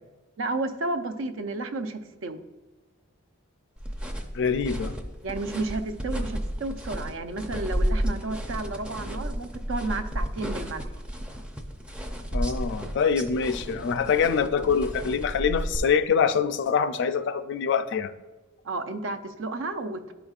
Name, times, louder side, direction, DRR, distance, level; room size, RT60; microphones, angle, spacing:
voice 1, 0.4-2.4 5.2-10.9 18.6-20.1, right 2 dB, 65° right, 8 dB, 0.5 m, -32 dB
sound 1, 3.8-15.8, equal, 5° right, 0.5 m, -32 dB
voice 2, 4.4-4.9 12.3-18.1, left 6 dB, 60° left, 11 dB, 0.4 m, -25 dB
11.0 x 5.0 x 2.4 m, 1.2 s
head